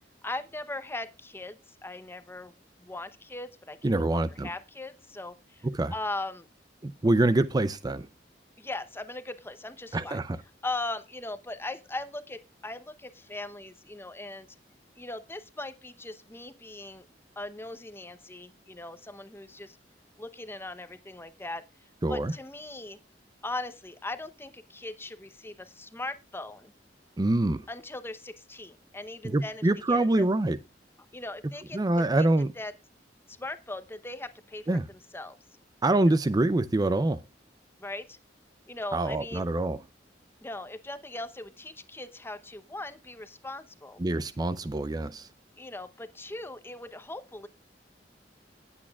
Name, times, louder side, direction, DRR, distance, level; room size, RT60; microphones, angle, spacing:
voice 1, 0.2-2.5 2.8-6.5 8.6-10.2 10.6-14.5 15.0-17.1 17.4-19.8 20.2-21.6 22.1-23.0 23.4-26.7 27.7-30.3 31.1-32.3 32.6-32.7 33.3-34.8 35.1-35.4 36.1-36.2 37.8-38.2 38.7-39.5 40.4-44.0 45.6-47.5, left 2 dB, 15° left, 0.8 m, -39 dB
voice 2, 3.8-4.5 5.6-5.9 6.8-8.1 9.9-10.4 22.0-22.3 27.2-27.7 29.2-30.6 31.7-32.5 34.7-34.8 35.8-37.2 38.9-39.8 44.0-45.3, right 2 dB, 20° right, 0.5 m, -25 dB
18.5 x 8.5 x 2.3 m
head